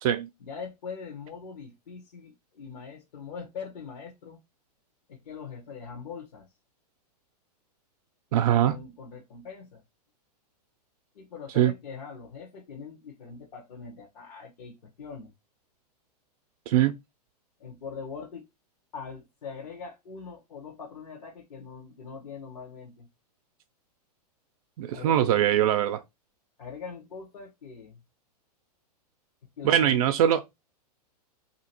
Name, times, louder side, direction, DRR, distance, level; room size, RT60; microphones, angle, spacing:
voice 1, 0.4-4.4 5.1-6.5 8.3-9.8 11.1-15.3 17.6-18.5 18.9-23.1 24.9-25.4 26.6-28.0 29.6-30.2, left 5 dB, 75° left, 1.0 m, -42 dB
voice 2, 8.3-8.8 11.6-11.7 16.7-17.0 24.8-26.0 29.6-30.4, right 11 dB, 60° right, 0.5 m, -22 dB
2.8 x 2.5 x 4.2 m
hypercardioid pair, 120°, 21 cm